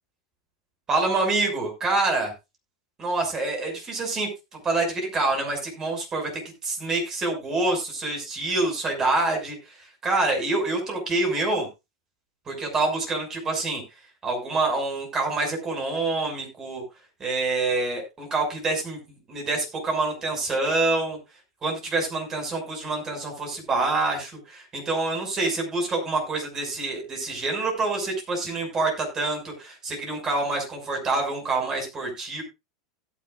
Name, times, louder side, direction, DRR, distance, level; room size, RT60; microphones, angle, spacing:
voice 1, 0.9-2.3 3.0-11.7 12.5-13.8 14.2-16.8 17.2-21.2 21.6-32.4, right 3 dB, 25° right, 2 dB, 6.2 m, -26 dB
16.5 x 10.5 x 2.5 m, 0.25 s
figure-of-eight pair, 85°, 2 cm